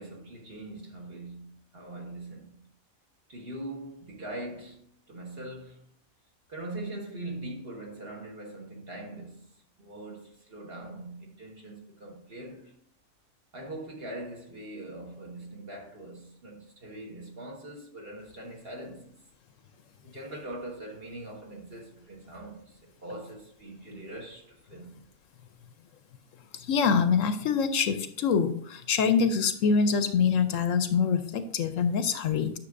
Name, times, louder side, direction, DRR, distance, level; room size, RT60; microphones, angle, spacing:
voice 1, 0.0-2.7 3.3-5.9 6.5-12.7 13.5-19.1 20.0-24.9, right 1 dB, 45° right, 1.6 m, -42 dB
voice 2, 26.5-32.5, left 6 dB, 70° left, 0.9 m, -25 dB
9.7 x 6.4 x 2.5 m
omnidirectional pair, 1.5 m